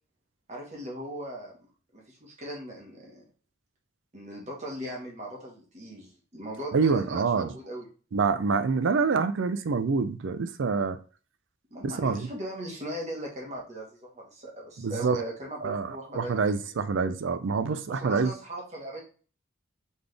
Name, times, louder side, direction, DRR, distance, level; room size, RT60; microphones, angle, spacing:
voice 1, 0.5-1.5 1.9-3.2 4.1-7.9 11.7-16.4 17.9-19.0, right 1 dB, 35° right, 1.4 m, -38 dB
voice 2, 6.7-7.5 8.1-11.0 11.8-12.3 14.8-15.2 15.6-18.3, right 4 dB, 65° right, 0.4 m, -26 dB
4.0 x 3.5 x 3.3 m
head